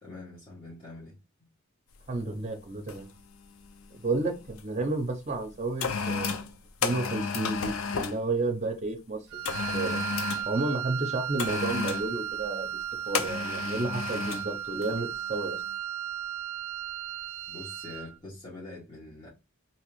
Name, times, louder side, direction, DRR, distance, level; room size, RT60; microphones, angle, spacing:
voice 1, 0.0-1.5 17.5-19.3, left 2 dB, 25° left, 1.3 m, -45 dB
sound 1, 2.0-2.2 2.9-3.2 3.4-4.6 5.3-8.2 9.4-10.5 11.4-12.1 13.1-14.5 14.8-15.0, left 5 dB, 70° left, 0.5 m, -32 dB
voice 2, 2.1-3.1 4.0-9.2 9.7-10.0 10.5-12.8 13.1-15.6, right 2 dB, 35° right, 0.6 m, -31 dB
Wind instrument woodwind instrument, 9.3-18.2, right 10 dB, 75° right, 0.3 m, -35 dB
2.9 x 2.9 x 3.0 m
head